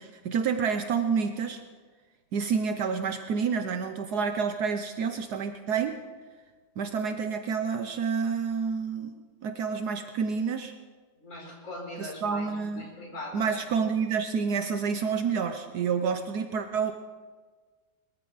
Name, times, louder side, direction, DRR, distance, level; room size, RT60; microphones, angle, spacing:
voice 1, 0.0-1.6 2.3-6.0 6.8-9.1 9.4-10.7 12.0-12.9 13.3-16.9, right 6 dB, 70° right, 7 dB, 1.3 m, -29 dB
voice 2, 11.2-12.5 12.8-13.6 14.2-14.3, left 1 dB, 45° left, -2 dB, 4.7 m, -41 dB
21.5 x 14.0 x 4.0 m, 1.5 s
omnidirectional pair, 1.8 m